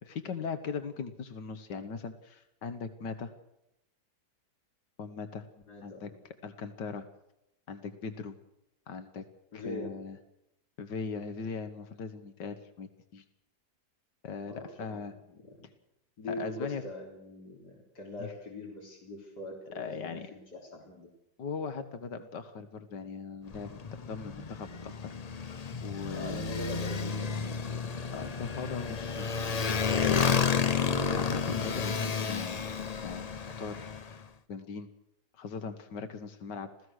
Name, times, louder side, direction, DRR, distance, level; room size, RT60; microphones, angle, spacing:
voice 1, 0.0-3.3 5.0-5.5 5.8-6.1 6.4-7.1 7.7-8.4 8.9-9.3 9.5-10.2 10.8-13.2 14.2-15.1 16.3-16.8 18.2-18.3 19.8-20.3 21.4-23.8 24.1-25.5 25.8-26.5 28.1-29.6 29.9-30.4 31.1-32.7 33.0-33.3 33.6-34.9 35.3-36.7, left 5 dB, 90° left, 9 dB, 2.0 m, -39 dB
voice 2, 5.7-6.2 9.5-9.9 14.5-15.7 16.2-21.1 26.1-27.7, left 1 dB, 75° left, -2 dB, 4.4 m, -42 dB
Motorcycle, 23.5-34.2, left 6 dB, 40° left, 0.5 m, -31 dB
27.0 x 16.5 x 6.5 m, 0.83 s
omnidirectional pair, 1.8 m